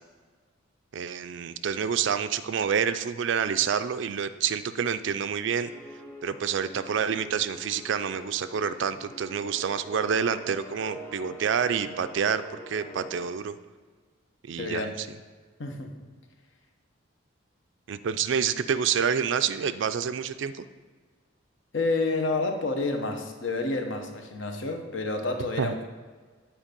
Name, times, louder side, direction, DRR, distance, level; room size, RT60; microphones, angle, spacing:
voice 1, 0.9-5.7 6.2-13.6 14.4-15.1 17.9-20.6 25.6-25.7, right 7 dB, 60° right, 12 dB, 0.3 m, -28 dB
sound 1, 5.6-13.3, equal, 10° left, 0.8 m, -45 dB
voice 2, 14.6-14.9 15.6-15.9 21.7-25.9, left 3 dB, 60° left, 4 dB, 0.9 m, -29 dB
8.9 x 4.6 x 5.2 m, 1.5 s
head